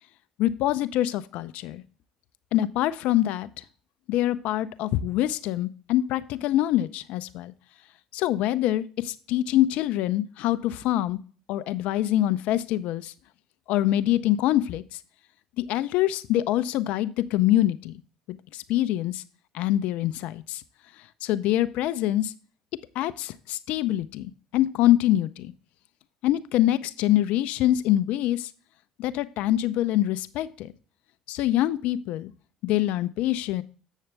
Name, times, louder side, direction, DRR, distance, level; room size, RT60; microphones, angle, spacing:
voice 1, 0.4-1.8 2.5-3.5 4.1-7.5 8.1-11.2 11.5-13.1 13.7-15.0 15.6-18.0 18.3-19.2 19.5-20.6 21.2-22.3 22.9-25.5 26.2-28.5 29.0-30.7 31.3-32.3 32.6-33.6, left 13 dB, 70° left, 14 dB, 0.5 m, -25 dB
8.2 x 6.5 x 3.3 m, 0.38 s
hypercardioid pair, 65°, 2 cm